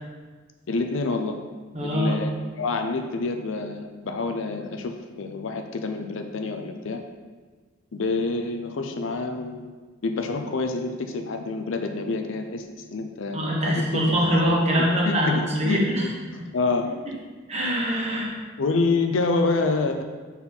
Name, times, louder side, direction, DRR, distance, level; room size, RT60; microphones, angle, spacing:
voice 1, 0.7-1.4 1.8-2.3 2.6-7.0 7.9-9.7 10.0-14.2 14.8-16.9 18.6-20.0, left 3 dB, 75° left, 6 dB, 0.5 m, -27 dB
voice 2, 1.7-2.2 13.3-16.0 17.5-18.3, equal, 35° right, -4 dB, 1.3 m, -23 dB
5.6 x 4.0 x 4.4 m, 1.4 s
head